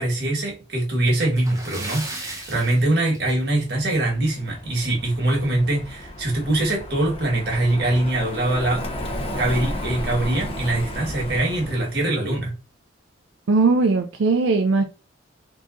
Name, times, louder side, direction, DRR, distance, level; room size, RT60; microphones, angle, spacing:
voice 1, 0.0-8.9 9.4-12.6, right 1 dB, 55° right, 1.3 m, -23 dB
Splash splatter, 1.4-3.7 4.0-4.2 4.6-4.7 6.2-6.3 6.6-6.7 7.3-7.6, right 2 dB, 15° right, 0.7 m, -36 dB
Car passing by, 3.6-12.1, left 1 dB, 30° left, 0.6 m, -33 dB
voice 2, 13.5-14.8, right 3 dB, 85° right, 0.4 m, -19 dB
3.6 x 2.9 x 2.4 m
head